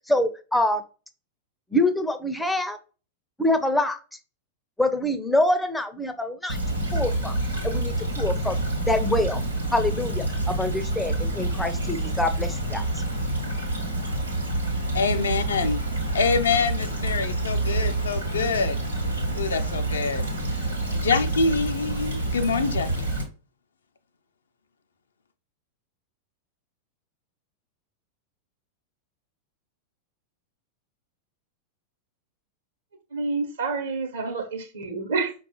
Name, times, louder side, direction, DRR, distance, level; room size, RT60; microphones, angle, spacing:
voice 1, 0.1-0.8 1.7-2.8 3.4-4.0 4.8-6.6 6.9-7.4 7.6-8.6 8.9-9.4 9.7-12.8, left 1 dB, 5° left, 0.4 m, -25 dB
Stream / Trickle dribble, 6.5-23.2, right 2 dB, 90° right, 1.0 m, -27 dB
voice 2, 14.9-15.8 16.1-18.8 19.3-20.3 20.9-23.1, left 4 dB, 70° left, 0.4 m, -25 dB
voice 3, 33.1-35.3, right 4 dB, 65° right, 0.9 m, -28 dB
5.0 x 2.3 x 2.8 m
figure-of-eight pair, 90°, 0 cm